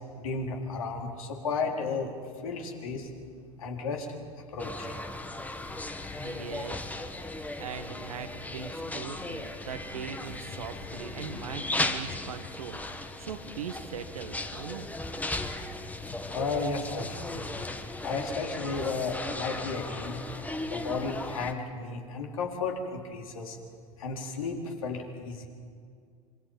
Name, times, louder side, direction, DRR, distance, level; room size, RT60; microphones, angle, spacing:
voice 1, 0.2-2.1 2.4-3.1 3.6-4.1 4.5-4.9 16.3-17.6 18.0-20.2 20.7-23.6 24.0-25.5, left 4 dB, 70° left, 1 dB, 3.7 m, -33 dB
sound 1, 4.6-21.5, left 2 dB, 10° left, 1.4 m, -37 dB
sound 2, 5.5-7.0 10.2-12.0 15.8-17.5, left 6 dB, 35° left, 5.2 m, -48 dB
voice 2, 6.2-7.0 7.3-14.9, right 7 dB, 75° right, 9 dB, 1.6 m, -40 dB
26.0 x 24.5 x 5.4 m, 2.2 s
figure-of-eight pair, 85°, 18 cm